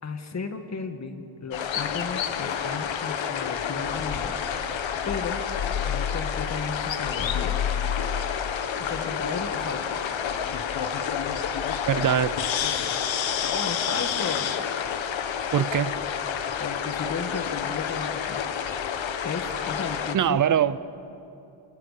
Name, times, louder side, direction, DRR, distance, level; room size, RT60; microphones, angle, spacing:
voice 1, 0.0-4.3 5.1-5.4 5.8-7.6 8.8-10.0 13.4-14.6 16.6-18.4 19.2-20.4, left 4 dB, 35° left, 6 dB, 1.8 m, -34 dB
sound 1, 1.5-20.2, left 8 dB, 70° left, 1.4 m, -29 dB
voice 2, 11.9-12.4 15.5-15.9 20.1-20.8, right 9 dB, 40° right, 15 dB, 0.8 m, -22 dB
28.0 x 26.5 x 6.7 m, 2.8 s
wide cardioid pair, 150°, 47 cm